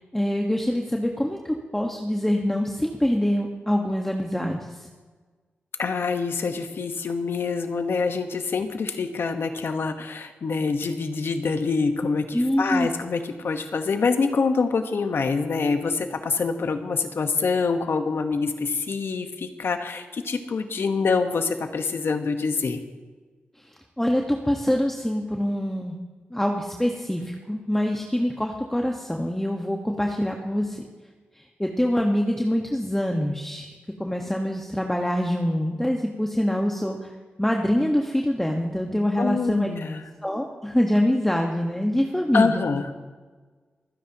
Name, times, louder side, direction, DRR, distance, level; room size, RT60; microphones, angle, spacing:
voice 1, 0.1-4.9 12.3-12.9 23.7-26.0 26.3-30.8 31.3-33.7 34.0-37.1 37.4-39.7 40.2-42.6, left 1 dB, 10° left, 1 dB, 1.4 m, -25 dB
voice 2, 5.8-22.8 39.2-40.0 42.3-42.9, left 4 dB, 65° left, 7 dB, 1.2 m, -25 dB
26.5 x 9.9 x 3.0 m, 1.4 s
cardioid pair, 45°, 4 cm